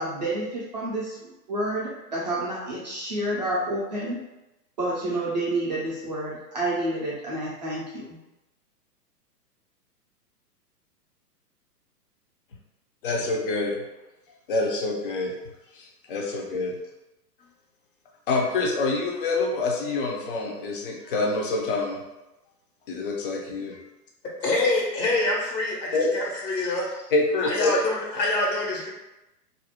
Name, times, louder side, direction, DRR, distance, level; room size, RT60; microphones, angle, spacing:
voice 1, 0.0-4.2 4.8-8.2, right 1 dB, 30° right, -6 dB, 0.4 m, -29 dB
voice 2, 13.0-13.8 14.5-15.3 15.7-16.8 18.3-22.0 22.9-23.8 25.9-26.1 27.1-27.7, left 3 dB, 40° left, -1 dB, 0.4 m, -26 dB
voice 3, 24.4-26.9 27.4-28.9, left 2 dB, 85° left, -2 dB, 1.0 m, -25 dB
2.4 x 2.0 x 2.7 m, 0.96 s
hypercardioid pair, 120°, 48 cm